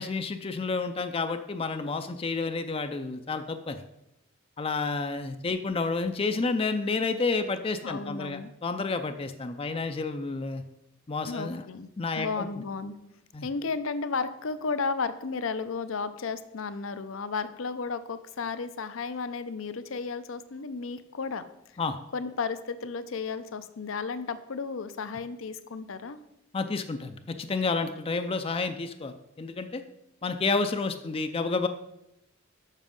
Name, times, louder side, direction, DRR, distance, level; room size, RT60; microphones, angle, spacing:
voice 1, 0.0-3.8 4.6-10.6 11.1-11.6 12.0-12.5 13.3-13.5 21.8-22.0 26.5-29.8 30.2-31.7, left 3 dB, 30° left, 8 dB, 0.4 m, -30 dB
voice 2, 7.8-8.5 11.3-11.9 12.2-13.0 13.4-21.4 22.1-26.2, left 4 dB, 75° left, 12 dB, 0.6 m, -33 dB
7.4 x 6.0 x 5.3 m, 0.85 s
head